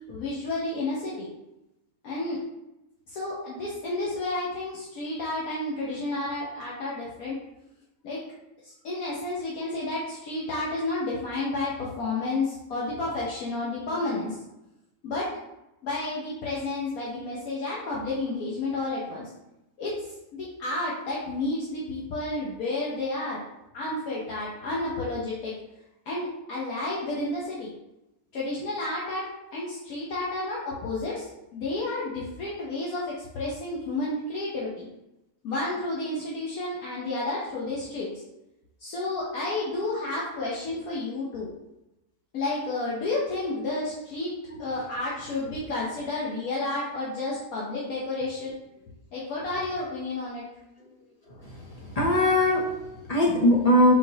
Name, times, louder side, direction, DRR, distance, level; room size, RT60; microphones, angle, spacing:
voice 1, 0.1-1.3 2.0-2.4 3.1-7.4 8.0-8.2 8.6-14.4 15.0-15.3 15.8-19.3 19.8-23.4 23.7-25.5 26.1-27.7 28.3-34.9 35.4-38.1 38.8-41.5 42.3-48.8 49.1-50.5, left 2 dB, 70° left, -6 dB, 1.2 m, -31 dB
voice 2, 51.3-53.9, left 1 dB, 45° left, -3 dB, 0.5 m, -22 dB
4.2 x 4.0 x 2.8 m, 0.94 s
omnidirectional pair, 1.7 m